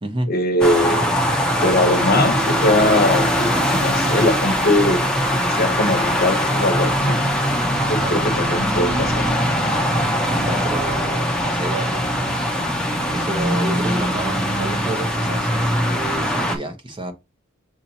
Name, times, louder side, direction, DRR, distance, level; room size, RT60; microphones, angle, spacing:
voice 1, 0.3-1.1 1.6-5.0 5.5-7.2 7.7-9.3, left 1 dB, 50° left, 0.9 m, -21 dB
sound 1, 0.6-16.6, equal, 5° left, 0.8 m, -21 dB
voice 2, 10.3-12.4 13.1-17.1, right 1 dB, 25° right, 0.8 m, -30 dB
6.8 x 2.8 x 2.8 m
head